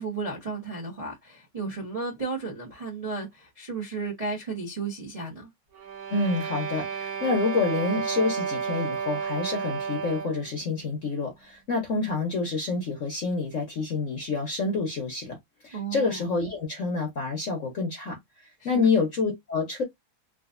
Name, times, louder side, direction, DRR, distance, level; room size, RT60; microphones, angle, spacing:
voice 1, 0.0-5.5 15.7-16.2 18.6-18.9, right 4 dB, 35° right, 0.5 m, -34 dB
sound 1, 5.7-10.5, right 6 dB, 55° right, 1.3 m, -31 dB
voice 2, 6.1-15.4 15.6-18.2 18.6-19.8, left 4 dB, 55° left, 0.9 m, -28 dB
3.8 x 2.4 x 2.5 m
omnidirectional pair, 2.3 m